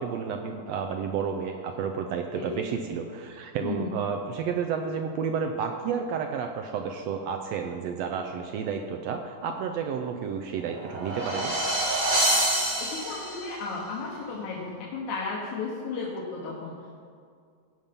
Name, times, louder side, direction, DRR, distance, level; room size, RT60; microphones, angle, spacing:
voice 1, 0.0-11.5, right 6 dB, 75° right, 4 dB, 1.6 m, -31 dB
sound 1, 10.6-13.6, right 1 dB, 50° right, 3.2 m, -26 dB
voice 2, 12.8-16.9, left 4 dB, 85° left, -4 dB, 2.7 m, -34 dB
17.0 x 5.6 x 5.3 m, 2.2 s
omnidirectional pair, 3.3 m